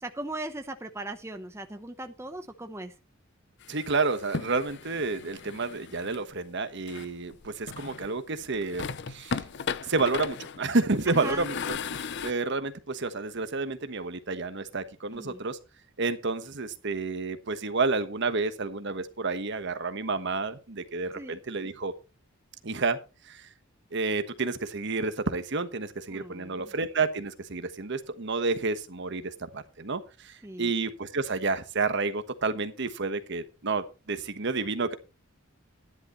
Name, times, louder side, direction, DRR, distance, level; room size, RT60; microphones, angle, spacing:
voice 1, 0.0-2.9 11.1-11.5 15.1-15.4 21.1-21.4 26.1-26.7 30.4-30.7, right 2 dB, 15° right, 7 dB, 0.8 m, -38 dB
sound 1, 3.6-6.2 6.9-8.2 8.5-12.3, left 6 dB, 55° left, 0.6 m, -36 dB
voice 2, 3.7-9.4 9.8-15.6 16.0-21.9 22.6-23.0 23.3-23.5 23.9-34.9, right 3 dB, 60° right, 10 dB, 1.2 m, -30 dB
13.0 x 11.0 x 3.1 m, 0.30 s
head